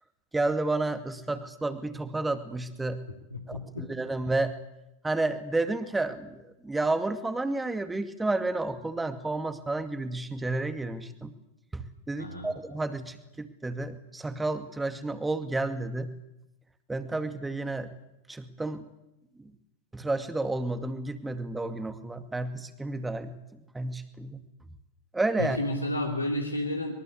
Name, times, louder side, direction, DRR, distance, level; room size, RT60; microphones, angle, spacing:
voice 1, 0.3-3.0 3.5-4.6 5.0-6.4 6.6-11.3 11.7-16.1 16.9-17.9 18.3-18.8 19.9-23.4 23.7-24.4 25.1-25.6, right 2 dB, 10° right, 9 dB, 2.3 m, -31 dB
voice 2, 3.3-3.9 12.2-12.5 25.4-26.9, left 1 dB, 85° left, 2 dB, 3.2 m, -31 dB
25.0 x 23.0 x 8.5 m, 0.88 s
figure-of-eight pair, 90°, 0 cm